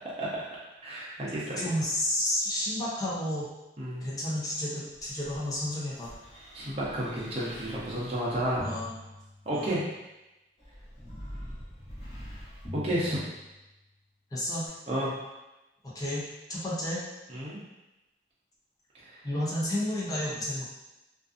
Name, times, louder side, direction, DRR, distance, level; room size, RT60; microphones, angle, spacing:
voice 1, 0.8-1.6 3.8-4.1 6.5-8.7 9.4-9.8 12.7-13.2 14.9-15.1 17.3-17.6 18.9-19.2, right 1 dB, 35° right, -7 dB, 0.7 m, -31 dB
voice 2, 1.6-3.5 4.0-6.1 8.6-8.9 9.5-9.8 11.0-11.2 14.3-14.7 15.9-17.0 19.2-20.6, left 1 dB, 20° left, -6 dB, 0.6 m, -31 dB
sound 1, 4.9-9.8 10.6-13.9 14.6-14.7, equal, 40° left, 1.0 m, -44 dB
2.5 x 2.5 x 2.4 m, 0.99 s
head